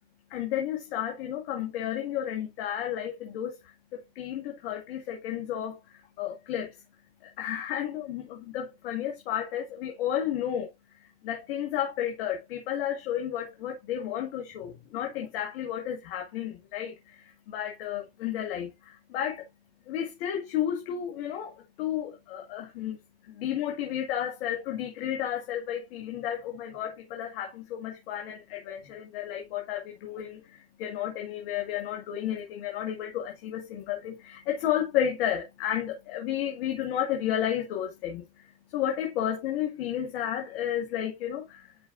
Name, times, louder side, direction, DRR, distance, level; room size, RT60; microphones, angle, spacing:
voice 1, 0.3-6.7 7.2-10.7 11.2-19.5 19.9-23.0 23.2-41.8, left 10 dB, 85° left, 1.7 m, -32 dB
11.0 x 5.0 x 2.5 m
supercardioid pair, 85°, 29 cm